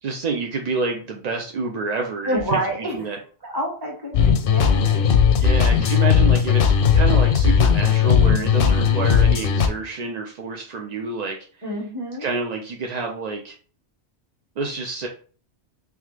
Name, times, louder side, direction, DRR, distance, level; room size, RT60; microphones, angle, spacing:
voice 1, 0.0-2.6 2.9-3.2 5.4-11.6 12.2-13.6 14.6-15.1, right 4 dB, 60° right, 2 dB, 0.4 m, -28 dB
voice 2, 2.2-3.1 3.4-5.1 8.2-9.1 11.6-12.3, equal, 20° right, -3 dB, 1.4 m, -29 dB
sound 1, 4.1-9.7, left 7 dB, 60° left, 0.7 m, -17 dB
3.5 x 3.1 x 3.2 m, 0.42 s
omnidirectional pair, 1.2 m